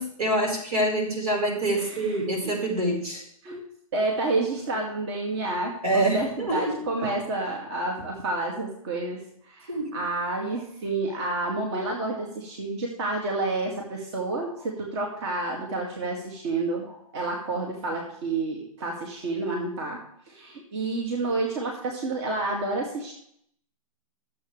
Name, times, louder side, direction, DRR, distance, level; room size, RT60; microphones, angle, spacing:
voice 1, 0.0-3.2 5.8-6.8 9.7-9.9, right 1 dB, 85° right, 0 dB, 4.7 m, -26 dB
voice 2, 1.8-2.6 3.4-3.6 3.9-9.2 9.5-20.0 20.3-23.1, right 2 dB, 50° right, 0 dB, 2.2 m, -29 dB
13.0 x 7.7 x 3.3 m, 0.68 s
hypercardioid pair, 135°, 19 cm